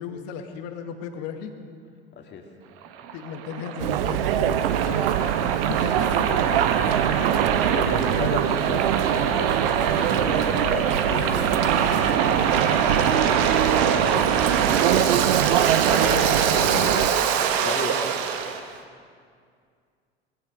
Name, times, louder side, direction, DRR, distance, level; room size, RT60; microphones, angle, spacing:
voice 1, 0.0-1.5 3.1-5.3 5.7-6.2 15.9-17.2, left 7 dB, 50° left, 6 dB, 1.7 m, -35 dB
voice 2, 2.2-2.5 6.3-6.6 7.7-15.1 17.5-18.0, left 5 dB, 35° left, 2 dB, 2.2 m, -35 dB
Waves surf, 2.8-18.6, right 7 dB, 50° right, 1.4 m, -24 dB
Chatter, 3.8-17.1, right 11 dB, 65° right, 0.7 m, -24 dB
19.5 x 14.5 x 5.1 m, 2.1 s
figure-of-eight pair, 75°, 31 cm